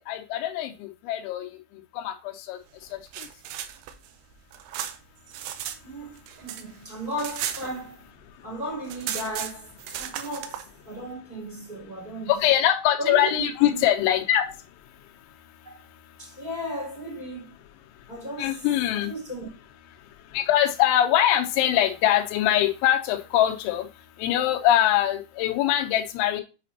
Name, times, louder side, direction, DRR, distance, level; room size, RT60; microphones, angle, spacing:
voice 1, 0.1-1.5 2.0-2.1 2.5-2.6 12.3-14.4 18.4-19.1 20.3-23.9 24.2-26.4, left 12 dB, 90° left, 3.2 m, -22 dB
sound 1, 2.9-5.8 6.1-8.2 8.5-8.6 8.8-10.7, right 10 dB, 85° right, 2.3 m, -35 dB
voice 2, 5.8-8.0 8.4-12.5 13.0-13.9 15.6-15.8 16.2-17.6 18.1-18.7 18.9-19.5, right 1 dB, 10° right, 3.5 m, -35 dB
8.1 x 5.1 x 2.8 m
omnidirectional pair, 5.3 m